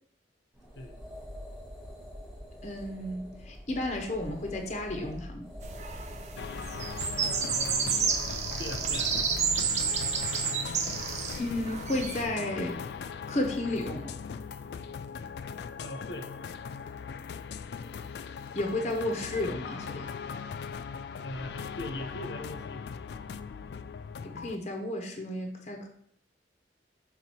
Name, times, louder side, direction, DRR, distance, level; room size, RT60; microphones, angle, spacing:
sound 1, 0.5-9.7, equal, ahead, 1.2 m, -45 dB
voice 1, 2.6-5.5 11.4-12.8 13.3-14.2 18.5-20.1 24.2-25.9, left 1 dB, 40° left, 3 dB, 0.8 m, -32 dB
sound 2, 5.6-12.2, right 6 dB, 40° right, 0.6 m, -31 dB
sound 3, 6.4-24.6, left 6 dB, 65° left, 0.3 m, -40 dB
voice 2, 7.1-8.0 8.6-9.2 15.8-16.3 21.2-22.9, left 1 dB, 80° left, 4 dB, 0.9 m, -40 dB
6.0 x 3.9 x 4.3 m, 0.67 s
head